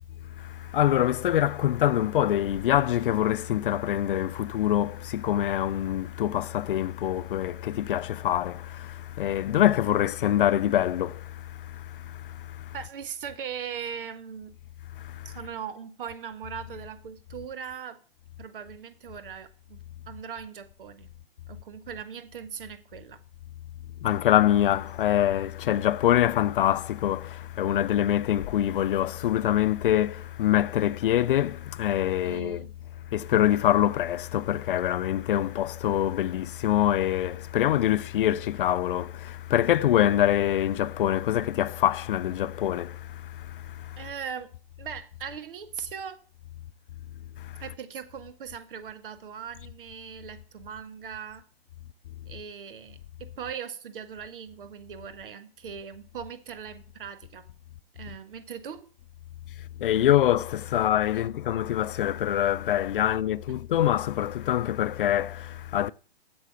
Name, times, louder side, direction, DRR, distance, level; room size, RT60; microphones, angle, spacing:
voice 1, 0.4-12.7 14.9-15.3 24.0-32.7 33.1-44.0 47.4-47.6 59.6-65.9, left 12 dB, 60° left, 0.5 m, -25 dB
voice 2, 12.7-14.5 15.2-18.0 18.4-21.1 21.5-23.2 32.2-32.7 44.0-44.5 44.8-46.2 47.6-51.4 52.3-57.5 57.9-58.9 63.0-63.1, right 7 dB, 60° right, 1.5 m, -39 dB
8.2 x 7.1 x 6.7 m
hypercardioid pair, 130°, 30 cm